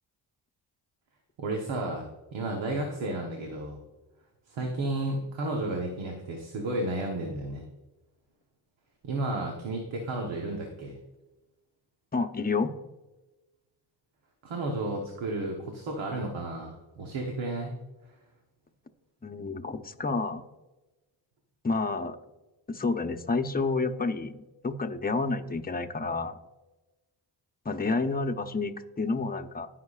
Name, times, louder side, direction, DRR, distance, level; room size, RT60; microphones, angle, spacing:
voice 1, 1.4-3.8 4.5-7.6 9.0-10.9 14.4-17.8, right 2 dB, 90° right, 1 dB, 1.2 m, -32 dB
voice 2, 12.1-12.7 19.2-20.4 21.6-22.2 22.7-26.4 27.6-29.7, left 3 dB, 20° left, 6 dB, 0.8 m, -29 dB
16.5 x 5.9 x 2.4 m, 1.1 s
cardioid pair, 60°, 45 cm